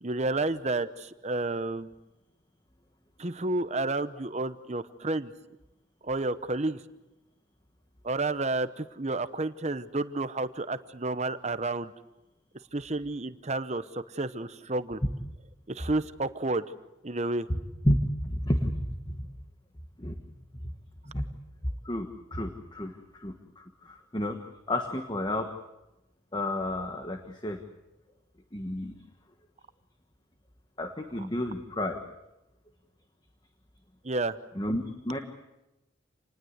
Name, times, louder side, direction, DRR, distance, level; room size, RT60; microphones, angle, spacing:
voice 1, 0.0-1.9 3.2-5.3 6.0-6.8 8.0-11.9 12.7-15.0 15.7-16.6 17.0-17.5 34.0-34.4, right 2 dB, 35° right, 13 dB, 0.9 m, -30 dB
voice 2, 17.5-19.3 20.0-20.2 20.5-20.6 21.0-21.2 21.8-25.5 26.3-27.6 28.5-29.0 30.8-32.0 34.5-35.2, left 1 dB, 20° left, 5 dB, 1.3 m, -31 dB
28.0 x 19.5 x 8.0 m, 0.99 s
head